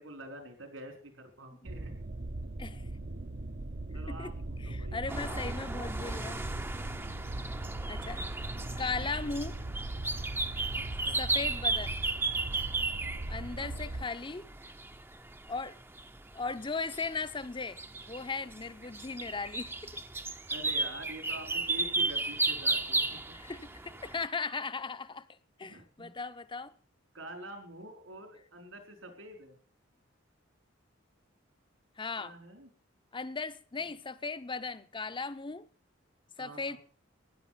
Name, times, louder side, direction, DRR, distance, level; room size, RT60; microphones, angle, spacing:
voice 1, 0.0-1.9 3.9-5.4 10.7-11.3 13.6-14.1 20.5-23.4 25.6-26.1 27.1-29.6 32.2-32.7 36.4-36.8, right 1 dB, 80° right, 4.5 m, -47 dB
sound 1, 1.6-14.1, right 2 dB, 50° right, 0.7 m, -39 dB
voice 2, 4.6-6.4 7.9-8.2 8.8-9.6 11.2-12.0 13.3-14.5 15.5-15.8 16.3-17.8 18.1-20.0 23.3-25.3 25.6-26.7 32.0-32.4 33.1-35.7 36.4-36.8, left 4 dB, 25° left, 0.8 m, -37 dB
sound 2, 5.1-24.3, right 3 dB, 10° right, 0.7 m, -35 dB
16.0 x 11.0 x 5.8 m
head